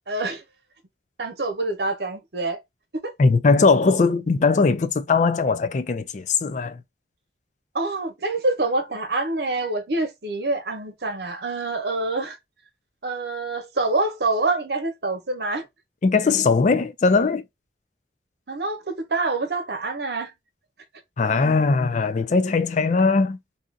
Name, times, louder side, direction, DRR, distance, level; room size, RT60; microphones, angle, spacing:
voice 1, 0.1-0.4 1.2-2.6 7.7-12.4 13.0-15.7 18.5-20.3, right 2 dB, 65° right, 0.9 m, -26 dB
voice 2, 3.2-6.8 16.0-17.4 21.2-23.4, left 4 dB, 45° left, 0.4 m, -20 dB
2.8 x 2.4 x 3.7 m
head